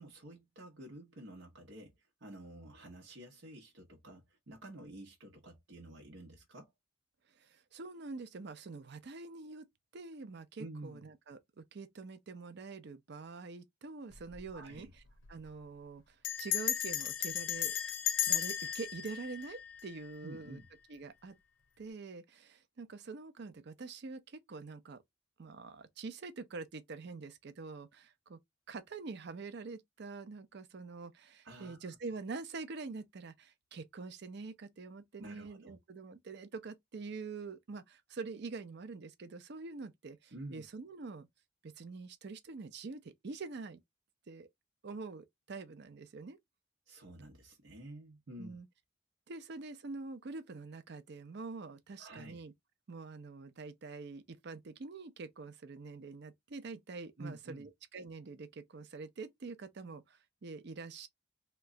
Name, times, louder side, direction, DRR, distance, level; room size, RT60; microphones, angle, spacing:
voice 1, 0.0-6.7 10.6-11.1 14.5-14.9 20.2-20.7 31.4-31.9 35.2-35.8 40.3-40.7 46.9-48.6 52.0-52.4 57.2-57.7, right 1 dB, 85° right, 0.9 m, -50 dB
voice 2, 7.4-9.7 9.9-14.9 15.3-17.7 18.3-20.6 20.9-21.4 21.8-25.0 25.4-28.4 28.7-41.3 41.6-43.8 44.3-44.5 44.8-46.4 48.4-48.7 49.3-52.5 52.9-61.1, right 4 dB, 60° right, 0.5 m, -45 dB
Bell, 14.1-14.5 14.8-14.9 15.1-15.5 16.2-20.3, left 11 dB, 90° left, 0.6 m, -35 dB
3.0 x 2.2 x 3.6 m
head